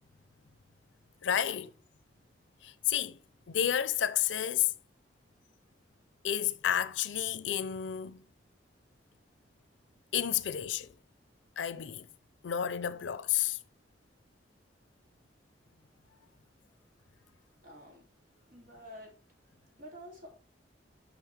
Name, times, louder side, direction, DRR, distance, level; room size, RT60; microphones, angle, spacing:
voice 1, 1.2-1.7 2.6-3.2 3.5-4.7 6.2-8.2 10.1-10.9 11.6-12.1 12.4-13.6, left 10 dB, 90° left, 0.5 m, -31 dB
voice 2, 17.6-18.1 18.5-19.1 19.8-20.3, equal, 50° right, 2.4 m, -49 dB
7.2 x 5.0 x 3.3 m
head